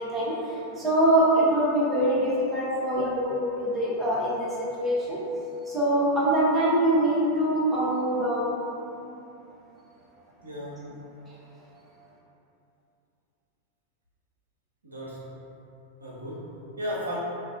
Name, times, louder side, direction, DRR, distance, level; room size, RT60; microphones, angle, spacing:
voice 1, 0.0-5.2 5.7-8.5, right 1 dB, 10° right, -8 dB, 0.7 m, -24 dB
voice 2, 10.4-11.0 14.8-15.5 16.0-17.2, equal, 80° right, -7 dB, 0.6 m, -36 dB
2.4 x 2.4 x 3.5 m, 2.8 s
figure-of-eight pair, 90°, 0 cm